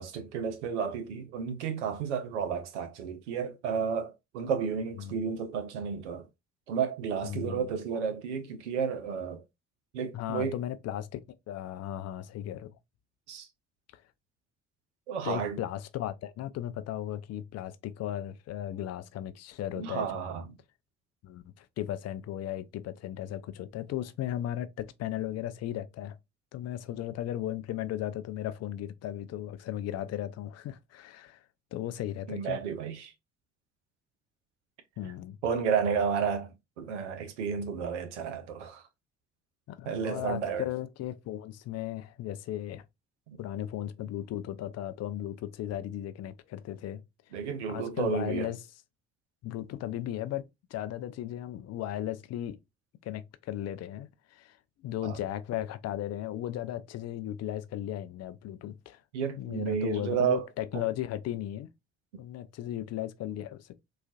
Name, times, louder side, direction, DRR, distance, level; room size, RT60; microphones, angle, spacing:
voice 1, 0.0-6.3 6.7-9.4 9.9-10.6 13.3-13.5 15.1-15.6 19.8-20.5 32.3-33.1 35.0-35.1 35.4-38.8 39.8-40.7 43.3-43.4 47.3-48.5 55.0-55.2 59.1-60.5 60.7-60.8, right 6 dB, 85° right, 0.6 m, -32 dB
voice 2, 7.2-7.7 10.1-12.8 13.9-14.0 15.2-20.1 21.2-26.2 26.5-31.4 31.7-32.6 35.0-35.4 39.7-42.8 43.4-47.0 47.7-48.6 49.4-50.4 50.7-52.6 53.0-54.6 54.8-59.0 59.4-61.7 62.2-63.8, left 12 dB, 50° left, 0.4 m, -36 dB
4.0 x 2.3 x 2.3 m
figure-of-eight pair, 40°, 35 cm